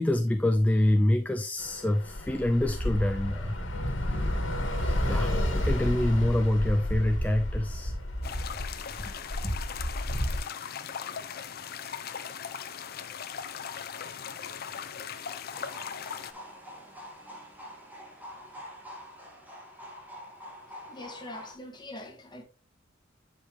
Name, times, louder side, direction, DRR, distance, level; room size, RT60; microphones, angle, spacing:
voice 1, 0.0-3.6 4.8-7.9 8.2-8.3 9.0-9.1 9.4-9.6, left 1 dB, 10° left, 0.3 m, -26 dB
Bus / Traffic noise roadway noise, 1.6-10.4, left 1 dB, 75° left, 1.7 m, -31 dB
sound 1, 8.2-16.3, left 7 dB, 55° left, 0.6 m, -39 dB
sound 2, 15.5-21.5, equal, 10° right, 1.7 m, -46 dB
voice 2, 20.8-22.4, left 2 dB, 25° left, 1.5 m, -43 dB
8.6 x 5.1 x 3.0 m
head